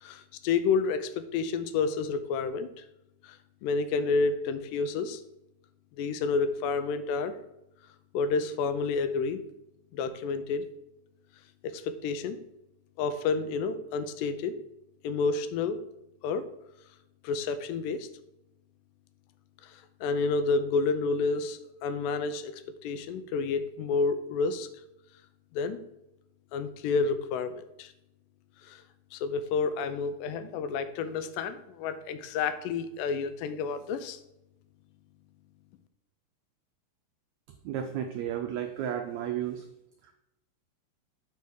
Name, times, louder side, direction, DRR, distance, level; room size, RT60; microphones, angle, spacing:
voice 1, 0.0-2.7 3.2-3.4 3.6-5.2 6.0-7.3 8.1-9.4 9.9-10.6 11.6-12.4 13.0-14.5 15.0-15.8 16.2-16.4 17.2-18.1 19.6-19.7 20.0-24.7 25.5-25.8 26.5-27.9 28.6-28.8 29.1-34.2, left 4 dB, 85° left, 10 dB, 2.3 m, -29 dB
voice 2, 37.6-39.6, right 10 dB, 90° right, 5 dB, 1.5 m, -33 dB
7.1 x 3.5 x 6.2 m, 0.85 s
omnidirectional pair, 3.8 m